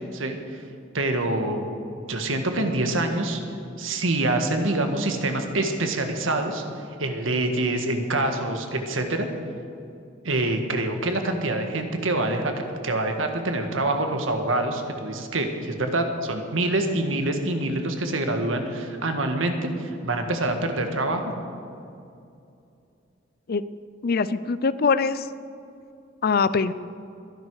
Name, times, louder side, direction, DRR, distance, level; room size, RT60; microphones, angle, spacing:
voice 1, 0.1-0.6 0.9-1.7 2.1-3.4 3.8-6.6 7.0-9.3 10.2-12.5 12.8-21.3, right 2 dB, 85° right, 5 dB, 1.7 m, -26 dB
voice 2, 24.0-25.3 26.2-26.7, left 5 dB, 50° left, 15 dB, 0.5 m, -22 dB
22.5 x 11.0 x 4.8 m, 2.5 s
head